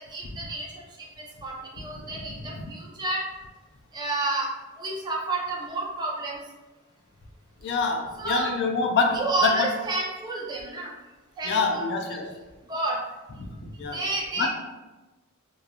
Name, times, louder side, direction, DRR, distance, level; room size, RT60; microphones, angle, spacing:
voice 1, 0.1-0.7 1.2-3.2 3.9-4.5 4.8-6.4 8.2-8.4 9.1-10.9 11.4-11.5 12.7-13.0 13.9-14.5, right 2 dB, 20° right, -3 dB, 0.5 m, -30 dB
voice 2, 2.1-2.6 7.6-9.7 11.4-12.3 13.4-14.0 14.4-14.5, left 4 dB, 50° left, 3 dB, 0.4 m, -26 dB
3.0 x 2.3 x 2.3 m, 1.1 s
head